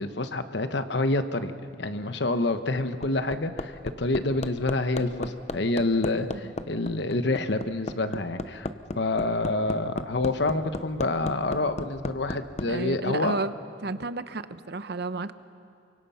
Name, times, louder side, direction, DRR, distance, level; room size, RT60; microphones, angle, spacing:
voice 1, 0.0-1.5 1.8-8.7 8.9-13.4, left 2 dB, 65° left, 9 dB, 1.1 m, -27 dB
Hammer, 2.5-12.7 14.0-14.1, left 2 dB, 40° left, 0.8 m, -34 dB
voice 2, 12.7-13.5 13.8-15.3, right 3 dB, 60° right, 12 dB, 0.8 m, -32 dB
29.0 x 24.5 x 5.7 m, 2.5 s
head